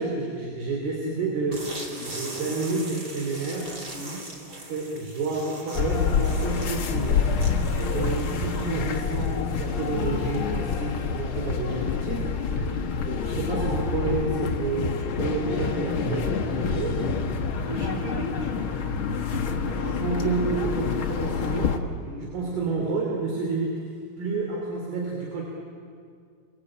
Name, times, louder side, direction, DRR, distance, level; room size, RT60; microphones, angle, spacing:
voice 1, 0.0-1.7 2.1-3.7 4.7-7.3 7.9-12.3 13.1-17.0 19.8-21.8 22.3-25.4, right 3 dB, 70° right, -1 dB, 5.0 m, -29 dB
sound 1, 1.5-11.0, right 1 dB, 25° right, 3.1 m, -41 dB
sound 2, 5.7-21.8, left 5 dB, 85° left, 1.1 m, -27 dB
voice 2, 17.6-19.8 20.1-20.5 22.0-22.3, right 1 dB, 50° right, -2 dB, 8.4 m, -38 dB
29.5 x 22.5 x 8.8 m, 2.2 s
omnidirectional pair, 4.7 m